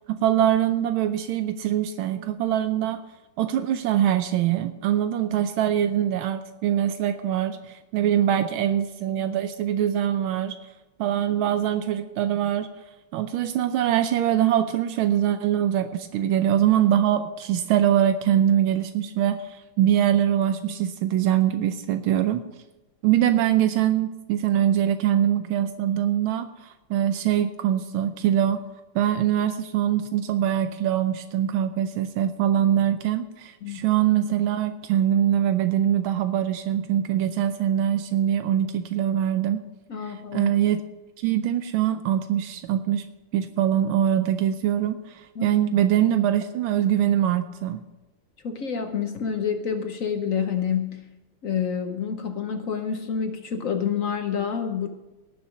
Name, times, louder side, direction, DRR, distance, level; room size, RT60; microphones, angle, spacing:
voice 1, 0.1-3.0 3.4-10.6 11.0-12.7 13.1-22.4 23.0-28.6 28.9-39.6 40.1-40.8 41.2-43.1 43.3-47.8, right 10 dB, 85° right, 9 dB, 1.4 m, -23 dB
voice 2, 39.9-40.5 45.3-45.5 48.4-51.1 51.4-54.9, left 7 dB, 55° left, 7 dB, 1.0 m, -28 dB
18.0 x 7.0 x 5.1 m, 1.0 s
omnidirectional pair, 2.3 m